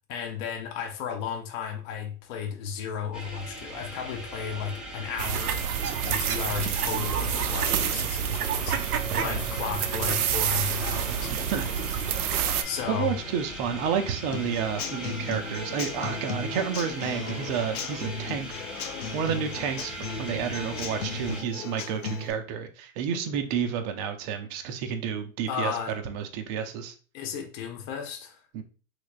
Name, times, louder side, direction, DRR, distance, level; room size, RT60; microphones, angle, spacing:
voice 1, 0.1-5.6 6.0-11.8 12.6-13.2 25.5-25.9 27.1-28.4, left 7 dB, 35° left, 0.6 m, -34 dB
sound 1, 3.1-21.4, right 1 dB, ahead, 0.7 m, -40 dB
sound 2, 5.2-12.6, right 8 dB, 90° right, 0.5 m, -28 dB
voice 2, 11.3-11.6 12.9-18.6 19.1-26.9 28.5-28.6, right 7 dB, 30° right, 0.4 m, -30 dB
Human voice / Acoustic guitar / Drum, 14.3-22.3, left 4 dB, 85° left, 0.8 m, -36 dB
3.2 x 3.2 x 2.4 m
hypercardioid pair, 120°, 42 cm